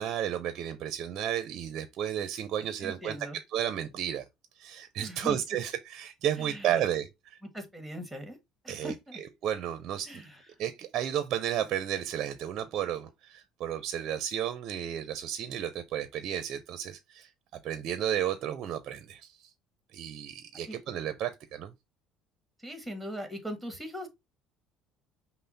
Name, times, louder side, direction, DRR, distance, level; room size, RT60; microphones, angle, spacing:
voice 1, 0.0-4.3 4.6-7.4 8.7-8.9 9.4-10.2 10.6-17.3 17.6-19.5 19.9-21.7, right 10 dB, 55° right, 0.5 m, -33 dB
voice 2, 2.8-3.4 5.0-5.4 6.4-6.8 7.5-8.4 8.6-9.2 10.0-10.6 20.6-20.8 22.6-24.1, equal, 5° right, 1.2 m, -40 dB
5.5 x 2.0 x 3.9 m
cardioid pair, 130°, 0 cm